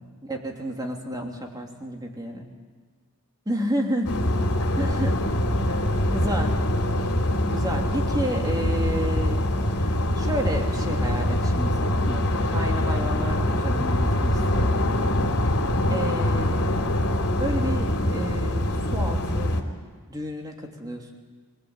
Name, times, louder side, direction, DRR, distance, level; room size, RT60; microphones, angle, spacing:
voice 1, 0.0-2.5 3.4-4.2 4.8-5.2 5.6-6.5 7.4-9.4 9.8-14.8 15.9-16.9 17.4-19.5 20.1-21.1, right 1 dB, 15° right, 1 dB, 3.2 m, -31 dB
sound 1, 4.0-19.6, left 1 dB, 80° left, 3.1 m, -24 dB
24.5 x 19.5 x 9.1 m, 1.5 s
head